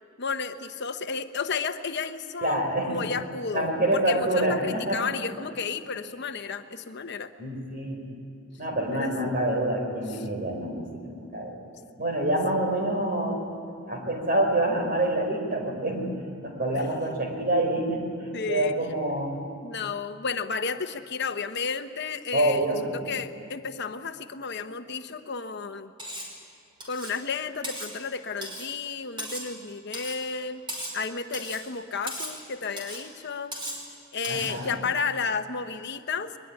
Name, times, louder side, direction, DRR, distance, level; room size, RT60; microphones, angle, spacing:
voice 1, 0.2-7.3 8.9-9.4 16.7-16.8 18.3-18.8 19.6-22.7 22.9-25.9 26.8-30.6 30.9-33.6 34.1-36.4, left 5 dB, 60° left, 8 dB, 1.0 m, -32 dB
voice 2, 2.4-3.1 3.5-5.0 7.4-8.2 8.6-11.7 12.0-13.5 13.8-18.1 18.5-19.5 22.3-22.9 34.3-34.8, right 1 dB, 45° right, 2 dB, 5.0 m, -27 dB
Cutlery silverware, 26.0-26.4 26.8-27.2 27.6-27.9 28.4-28.7 29.2-29.5 29.9-30.2 30.7-31.0 31.3-31.7 32.1-32.4 32.8-33.0 33.5-33.9 34.2-34.6, right 1 dB, 25° right, 5.4 m, -37 dB
22.0 x 21.0 x 9.9 m, 2.5 s
head